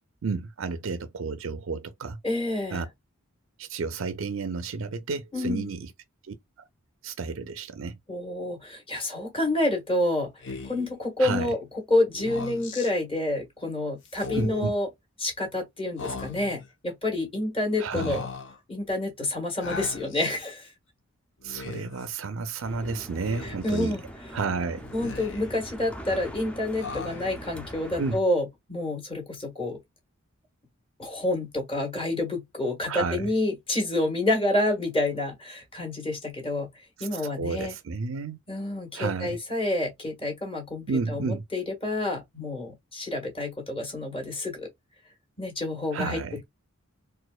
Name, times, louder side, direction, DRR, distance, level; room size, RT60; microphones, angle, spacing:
voice 1, 0.2-2.2 2.7-2.9 3.6-5.9 6.3-6.7 7.0-8.0 11.2-11.5 14.3-14.7 17.8-18.2 21.4-24.0 24.3-24.9 28.0-28.2 32.9-33.3 37.0-38.4 38.9-39.4 40.9-41.4 45.9-46.4, right 4 dB, 65° right, 0.5 m, -31 dB
voice 2, 2.2-2.9 5.3-5.7 8.1-11.6 11.9-14.9 15.2-18.2 18.7-20.7 23.4-24.0 24.9-29.8 31.0-36.7 37.0-37.7 38.5-44.7 45.4-46.4, left 2 dB, 25° left, 1.6 m, -28 dB
Speech, 10.4-10.9 12.1-12.9 14.1-14.8 16.0-16.7 17.9-18.6 19.6-20.4 21.4-22.1 23.2-23.9 24.8-25.6 26.8-27.5, left 4 dB, 60° left, 0.9 m, -38 dB
sound 1, 22.6-28.2, equal, 5° left, 0.5 m, -42 dB
4.2 x 2.5 x 2.2 m
head